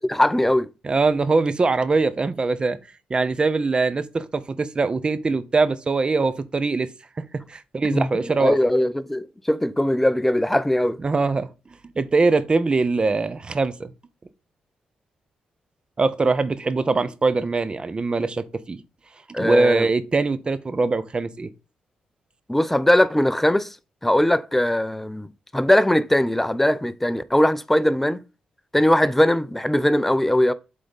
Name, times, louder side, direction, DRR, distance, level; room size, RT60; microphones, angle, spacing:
voice 1, 0.1-0.7 7.9-8.1 8.4-11.0 19.3-19.9 22.5-23.8 24.0-25.3 25.5-28.2 28.7-30.5, left 1 dB, 5° left, 0.6 m, -20 dB
voice 2, 0.8-2.8 3.1-6.9 7.2-8.6 11.0-11.5 12.0-13.9 16.0-18.8 19.4-21.5, right 3 dB, 30° right, 0.8 m, -22 dB
7.7 x 3.8 x 5.3 m
cardioid pair, 85°, 3 cm